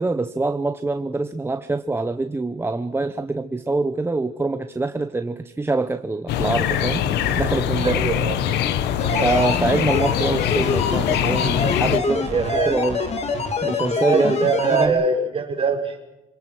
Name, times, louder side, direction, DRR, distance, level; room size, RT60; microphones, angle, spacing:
voice 1, 0.0-7.1 7.4-8.1 9.2-13.0 13.6-14.4 14.7-15.0, right 3 dB, 15° right, 9 dB, 0.9 m, -24 dB
sound 1, 6.3-12.0, left 11 dB, 80° left, 1.3 m, -23 dB
Thunder / Rain, 6.4-13.7, right 6 dB, 55° right, 5.4 m, -39 dB
voice 2, 7.8-8.3 9.1-9.3 12.3-12.8 13.9-16.0, right 4 dB, 30° right, 2 dB, 5.0 m, -23 dB
sound 2, 9.0-14.9, left 4 dB, 40° left, 2.9 m, -25 dB
26.5 x 19.0 x 6.3 m, 0.98 s
cardioid pair, 110°, 17 cm